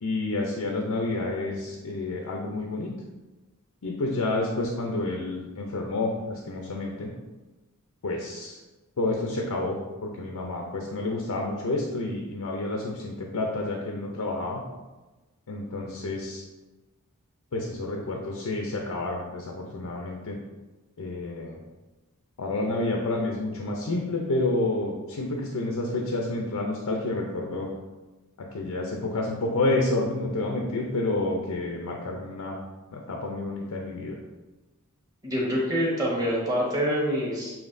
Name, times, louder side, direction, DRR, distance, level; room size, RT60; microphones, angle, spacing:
voice 1, 0.0-2.9 3.8-7.1 8.0-8.6 9.0-9.8 10.0-14.6 15.5-16.4 17.5-20.4 21.0-21.6 22.4-27.7 28.5-32.6 32.9-34.2, left 2 dB, 85° left, 0 dB, 0.6 m, -29 dB
voice 2, 35.2-37.5, equal, 15° right, -4 dB, 1.2 m, -26 dB
7.1 x 2.9 x 2.6 m, 1.2 s
head